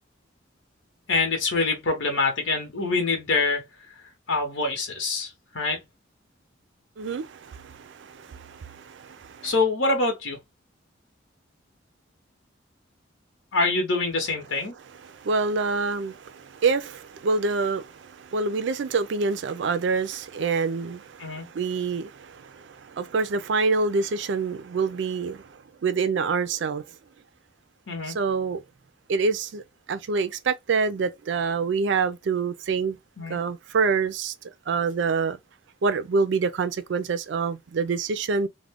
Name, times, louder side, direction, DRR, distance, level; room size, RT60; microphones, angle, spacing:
voice 1, 1.1-3.7 4.3-5.8 9.4-10.4 13.5-14.7 21.2-21.5 27.9-28.2 33.2-33.4, left 3 dB, 80° left, 0.9 m, -25 dB
voice 2, 7.0-9.5 15.0-26.8 28.1-28.6 29.1-29.6 29.9-33.0 33.3-34.3 34.7-35.4 35.8-38.5, right 4 dB, 60° right, 0.4 m, -26 dB
2.4 x 2.1 x 3.4 m
head